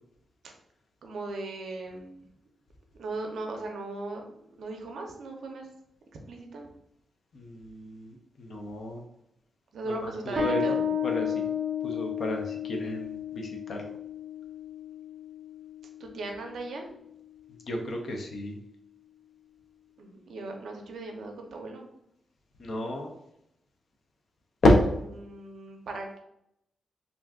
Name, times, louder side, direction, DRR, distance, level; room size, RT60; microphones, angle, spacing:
voice 1, 1.0-2.2 2.9-5.7 6.3-6.7 9.7-10.9 16.0-16.8 20.0-21.9 25.2-26.2, right 2 dB, 65° right, 3 dB, 0.5 m, -38 dB
voice 2, 7.3-9.0 10.0-10.1 10.4-10.6 11.0-11.5 11.8-13.9 17.7-18.5 22.6-23.1 24.6-24.7, left 1 dB, 50° left, 2 dB, 0.5 m, -29 dB
Bass guitar, 10.4-17.5, left 7 dB, 10° right, 0.7 m, -33 dB
2.5 x 2.3 x 3.4 m, 0.76 s
wide cardioid pair, 155°, 0 cm